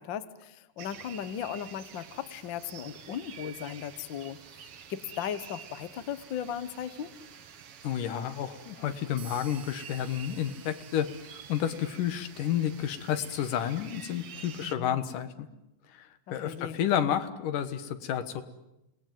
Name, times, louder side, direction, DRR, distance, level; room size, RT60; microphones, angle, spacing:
voice 1, 0.0-7.2 14.6-15.0 16.3-16.8, left 9 dB, 60° left, 13 dB, 1.3 m, -37 dB
sound 1, 0.8-14.7, right 8 dB, 55° right, 2.0 m, -49 dB
voice 2, 7.8-15.5 15.9-18.4, left 10 dB, 85° left, 10 dB, 3.0 m, -31 dB
sound 2, 9.2-12.9, right 11 dB, 75° right, 2.7 m, -54 dB
27.5 x 19.5 x 9.2 m, 0.92 s
omnidirectional pair, 3.6 m